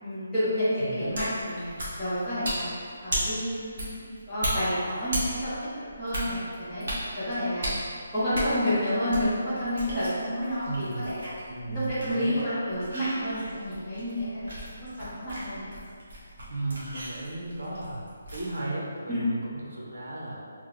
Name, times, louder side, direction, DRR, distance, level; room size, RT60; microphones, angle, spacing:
voice 1, 0.0-1.7 2.0-5.5 6.0-6.9 7.2-7.8 8.1-11.3 11.7-14.4 14.7-15.7 19.1-19.3, equal, ahead, -21 dB, 0.7 m, -29 dB
voice 2, 0.8-1.1 10.7-11.2 11.5-12.3 16.5-20.5, right 2 dB, 85° right, -4 dB, 0.7 m, -35 dB
sound 1, 1.1-18.6, right 1 dB, 45° right, 0.9 m, -37 dB
3.0 x 2.1 x 3.7 m, 2.2 s
hypercardioid pair, 180°, 0 cm